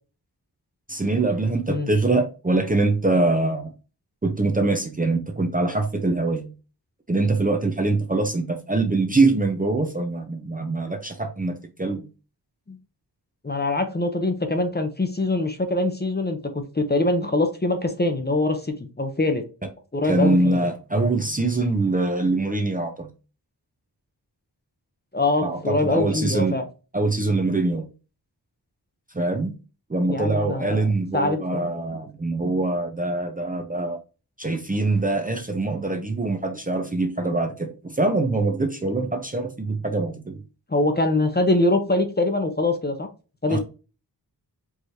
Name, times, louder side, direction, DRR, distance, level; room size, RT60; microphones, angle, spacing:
voice 1, 0.9-3.7 4.2-6.5 7.1-12.0 20.0-23.1 25.4-26.6 26.9-27.9 29.1-29.6 29.9-34.0 34.4-40.4 43.5-43.6, right 2 dB, 20° right, 0.6 m, -23 dB
voice 2, 13.4-19.4 19.9-20.6 25.1-26.6 30.1-30.8 31.1-31.7 40.7-43.1 43.4-43.6, left 2 dB, 25° left, 0.7 m, -23 dB
4.7 x 3.1 x 2.7 m
wide cardioid pair, 70°, 41 cm